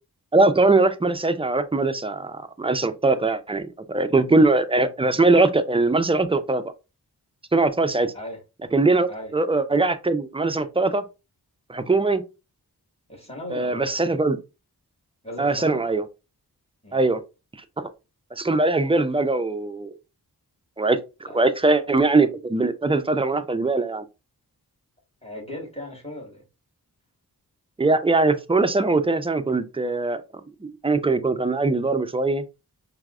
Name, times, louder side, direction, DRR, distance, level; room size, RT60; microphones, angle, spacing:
voice 1, 0.3-6.6 7.5-8.1 8.7-11.0 11.7-12.2 13.5-14.4 15.4-16.0 16.9-17.2 17.8-17.9 18.3-19.9 20.8-24.0 27.8-30.2 30.6-32.4, right 3 dB, 15° right, 0.3 m, -21 dB
voice 2, 13.1-14.0 15.2-15.9 16.8-17.0 21.3-21.5 25.2-26.4, left 1 dB, 15° left, 1.5 m, -37 dB
4.5 x 2.0 x 2.4 m
wide cardioid pair, 45°, 39 cm